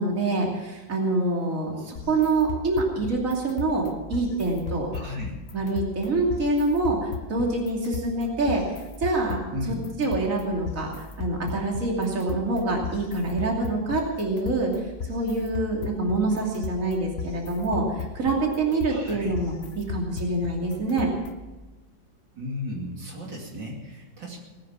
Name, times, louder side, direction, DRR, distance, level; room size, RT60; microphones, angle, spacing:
voice 1, 0.0-4.9 5.5-8.6 9.0-9.4 9.7-10.9 11.2-21.1, right 2 dB, 45° right, -1 dB, 3.1 m, -26 dB
voice 2, 1.7-2.1 4.9-5.3 9.5-9.8 18.9-19.3 22.4-24.4, left 1 dB, 70° right, -1 dB, 3.3 m, -35 dB
sound 1, 2.0-21.5, left 5 dB, 45° left, 1.2 m, -37 dB
19.0 x 9.7 x 7.2 m, 1.1 s
omnidirectional pair, 2.0 m